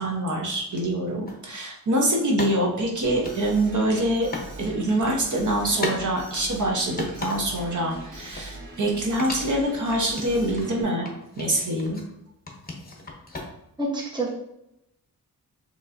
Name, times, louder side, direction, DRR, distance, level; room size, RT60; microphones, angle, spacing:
voice 1, 0.0-4.3 4.6-11.1 11.4-12.0, right 1 dB, 55° right, -1 dB, 0.9 m, -25 dB
sound 1, 1.3-1.4 2.4-4.5 4.8-5.2 5.8-6.0 6.4-7.7 8.0-8.9 9.2-10.7 11.1-12.1 12.5-13.8, left 2 dB, 25° left, 0.8 m, -36 dB
Alarm, 3.0-10.8, right 2 dB, 90° right, 1.7 m, -41 dB
voice 2, 13.8-14.4, right 2 dB, 15° right, -3 dB, 0.9 m, -27 dB
6.7 x 3.1 x 2.6 m, 0.82 s
wide cardioid pair, 145°, 36 cm